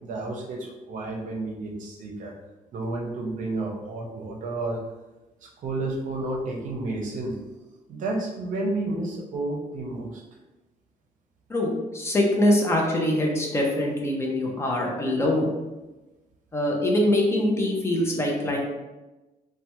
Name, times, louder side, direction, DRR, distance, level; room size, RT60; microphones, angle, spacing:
voice 1, 0.0-2.3 2.7-4.8 5.4-7.3 7.9-10.2, right 2 dB, 60° right, 0 dB, 0.6 m, -31 dB
voice 2, 11.5-15.5 16.5-18.6, left 1 dB, 20° left, -1 dB, 0.5 m, -23 dB
3.2 x 2.2 x 2.9 m, 1.1 s
cardioid pair, 170°, 15 cm